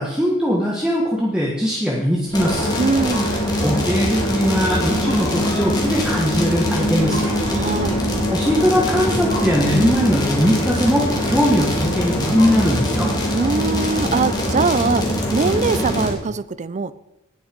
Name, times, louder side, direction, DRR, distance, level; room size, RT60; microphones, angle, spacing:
voice 1, 0.0-2.7 3.6-7.3 8.3-13.1, equal, 5° right, -3 dB, 1.5 m, -20 dB
sound 1, 2.3-12.8, equal, 50° left, 3.8 m, -35 dB
sound 2, 2.3-16.1, left 1 dB, 20° left, 2.7 m, -22 dB
voice 2, 2.8-3.3 7.4-8.0 13.3-16.9, right 4 dB, 35° right, 16 dB, 0.4 m, -22 dB
18.0 x 6.3 x 5.3 m, 0.97 s
head